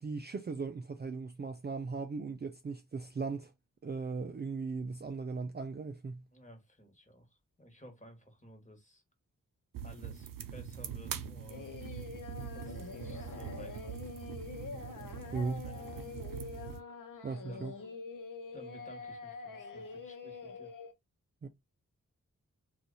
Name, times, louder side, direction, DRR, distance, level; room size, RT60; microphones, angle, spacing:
voice 1, 0.0-3.5 3.8-6.2 14.9-15.0 15.3-15.7 17.2-17.7 21.4-21.5, right 4 dB, 30° right, 0.4 m, -38 dB
voice 2, 6.3-9.0 9.8-12.1 12.5-14.1 15.6-16.3 17.5-17.7 18.5-20.7, equal, 25° left, 1.5 m, -55 dB
sound 1, 9.7-16.8, right 8 dB, 85° right, 0.5 m, -43 dB
Singing, 11.5-20.9, left 5 dB, 70° left, 0.8 m, -45 dB
2.7 x 2.4 x 3.9 m
cardioid pair, 60°, 33 cm